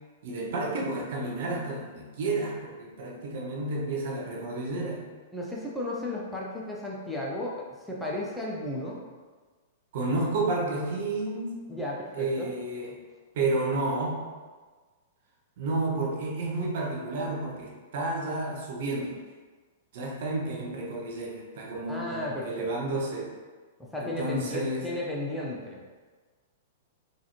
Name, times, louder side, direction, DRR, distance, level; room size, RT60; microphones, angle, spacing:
voice 1, 0.2-5.0 9.9-11.6 12.1-12.9 13.3-14.2 15.6-19.2 19.9-23.3 24.0-24.9, right 2 dB, 55° right, -1 dB, 0.7 m, -31 dB
voice 2, 5.3-7.6 7.8-9.0 11.7-12.5 21.9-22.7 23.8-25.8, left 1 dB, 5° left, -4 dB, 0.6 m, -34 dB
3.9 x 2.6 x 3.0 m, 1.4 s
figure-of-eight pair, 105°, 0 cm